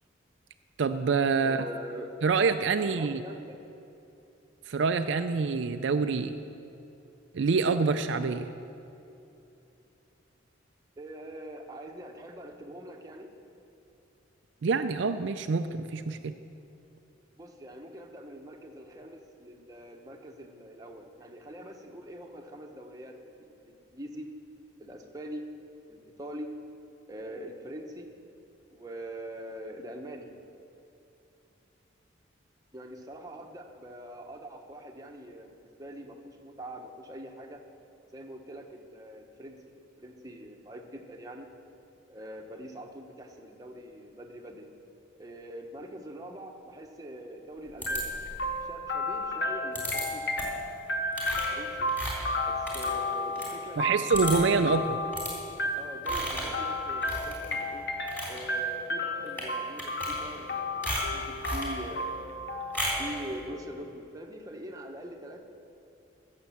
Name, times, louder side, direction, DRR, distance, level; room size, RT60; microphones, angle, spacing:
voice 1, 0.8-1.7 2.2-3.2 4.7-6.4 7.3-8.5 14.6-16.3 53.8-55.0, right 4 dB, 65° right, 8 dB, 0.4 m, -26 dB
voice 2, 1.4-2.1 2.8-3.6 11.0-13.3 17.4-24.3 24.8-25.4 25.9-26.5 27.1-28.1 28.7-30.3 32.7-37.6 38.1-41.5 42.1-44.7 45.2-48.2 48.6-50.7 51.3-51.9 52.5-54.4 55.8-57.9 58.3-62.4 63.0-65.4, equal, 20° right, 2 dB, 1.0 m, -43 dB
sound 1, 47.8-48.5 49.8-50.0 50.4-50.7 51.1-53.5 53.8-53.9 54.1-54.6 55.1-55.3 56.0-56.6 57.0-57.6 57.9-58.4 59.3-59.5 59.8-60.5 60.8-61.8 62.7-63.1, equal, 10° left, 3.2 m, -35 dB
sound 2, 47.9-63.6, left 1 dB, 55° left, 1.0 m, -33 dB
15.0 x 6.6 x 7.3 m, 2.8 s
head